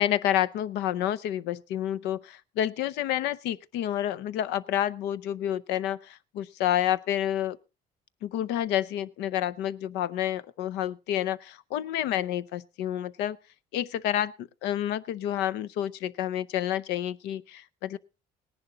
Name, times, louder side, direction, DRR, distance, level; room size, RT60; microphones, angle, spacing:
voice 1, 0.0-7.6 8.2-13.4 13.7-18.0, left 11 dB, 90° left, 0.6 m, -29 dB
18.0 x 10.5 x 3.8 m
cardioid pair, 110°, 17 cm